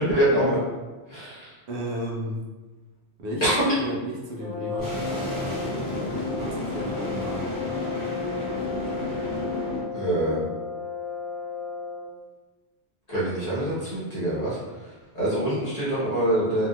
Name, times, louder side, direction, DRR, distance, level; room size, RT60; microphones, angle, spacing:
voice 1, 0.1-0.6 1.1-1.5 3.4-3.5 9.9-10.5 13.1-14.6 15.1-16.7, right 1 dB, 35° left, -9 dB, 1.1 m, -25 dB
voice 2, 1.7-2.5 3.2-5.8 6.3-7.5, left 1 dB, 70° right, -3 dB, 0.9 m, -33 dB
Brass instrument, 4.4-12.2, left 4 dB, 10° right, 1.4 m, -34 dB
sound 1, 4.8-9.8, left 1 dB, 65° left, 1.2 m, -31 dB
2.9 x 2.7 x 2.3 m, 1.2 s
omnidirectional pair, 1.2 m